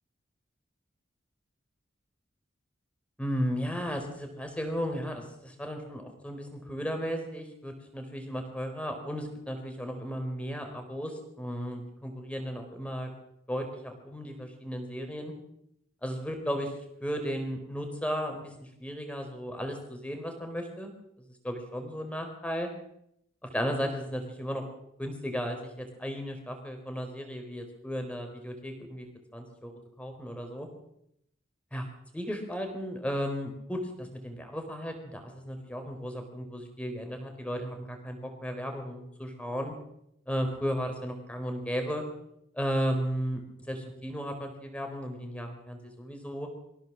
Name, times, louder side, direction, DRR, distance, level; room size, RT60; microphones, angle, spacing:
voice 1, 3.2-13.1 13.5-15.3 16.0-16.7 17.0-18.5 18.8-20.9 21.4-22.7 23.4-24.6 25.0-29.1 29.3-29.7 30.0-30.7 31.7-31.9 32.1-39.7 40.3-42.0 42.5-43.4 43.7-46.5, equal, 5° left, 4 dB, 4.3 m, -35 dB
24.5 x 16.0 x 7.5 m, 0.78 s
head